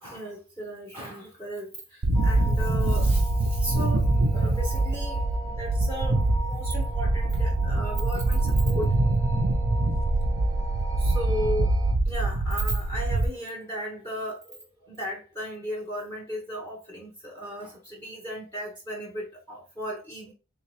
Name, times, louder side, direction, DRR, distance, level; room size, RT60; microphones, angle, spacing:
voice 1, 0.0-8.9 11.0-11.7 12.0-20.3, equal, 15° left, 0.8 m, -36 dB
sound 1, 2.0-13.3, right 2 dB, 75° right, 0.5 m, -24 dB
sound 2, 2.1-11.9, right 1 dB, 15° right, 0.5 m, -41 dB
3.6 x 2.8 x 3.1 m
head